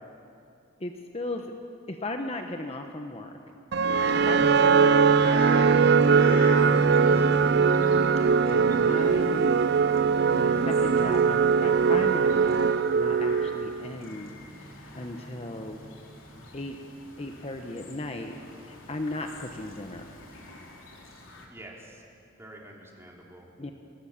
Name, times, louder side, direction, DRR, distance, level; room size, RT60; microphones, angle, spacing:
voice 1, 0.8-1.5 1.9-3.3 4.2-7.3 8.5-9.6 10.3-14.3 14.6-15.8 16.5-16.8 17.2-18.4 18.6-20.1 23.6-23.7, left 2 dB, 30° left, 4 dB, 1.1 m, -37 dB
sound 1, 3.7-13.9, right 6 dB, 55° right, 0.4 m, -21 dB
sound 2, 4.0-21.5, left 3 dB, 85° left, 3.1 m, -46 dB
Guitar, 4.4-12.3, right 2 dB, 15° left, 1.7 m, -31 dB
voice 2, 6.8-7.3 8.1-8.3 21.5-22.0 22.4-23.5, right 1 dB, 15° right, -2 dB, 3.2 m, -47 dB
23.5 x 19.0 x 7.3 m, 2.6 s
head